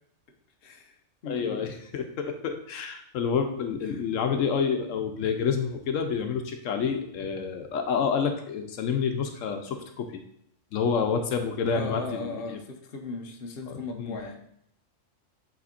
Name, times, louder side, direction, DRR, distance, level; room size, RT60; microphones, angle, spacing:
voice 1, 0.6-0.9 1.2-1.7 3.9-4.0 11.7-14.4, left 3 dB, 55° left, 3 dB, 0.9 m, -37 dB
voice 2, 1.3-10.2 10.7-12.6 13.7-14.2, left 6 dB, 80° left, 6 dB, 1.1 m, -28 dB
7.5 x 3.6 x 4.2 m, 0.72 s
omnidirectional pair, 1.3 m